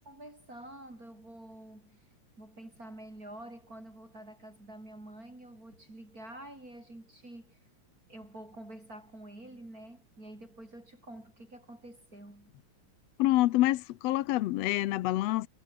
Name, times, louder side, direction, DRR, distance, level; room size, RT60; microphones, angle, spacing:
voice 1, 0.1-2.0 2.4-7.6 8.1-12.5, right 1 dB, 25° right, 7.3 m, -48 dB
voice 2, 13.2-15.5, left 16 dB, 75° left, 1.6 m, -27 dB
omnidirectional pair, 3.4 m